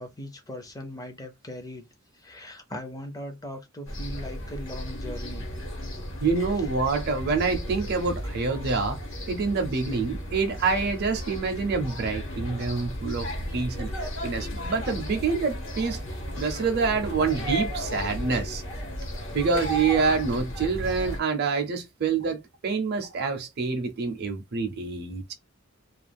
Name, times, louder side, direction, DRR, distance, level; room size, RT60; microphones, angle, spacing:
voice 1, 0.0-1.9 2.1-5.5 5.9-6.0 6.6-6.7, left 1 dB, 20° left, 0.6 m, -39 dB
sound 1, 3.9-21.2, equal, 65° left, 1.2 m, -34 dB
voice 2, 6.2-9.0 9.3-13.3 13.5-13.9 14.2-16.0 16.4-18.6 19.3-25.3, right 4 dB, 50° right, 0.6 m, -26 dB
2.4 x 2.3 x 3.4 m
head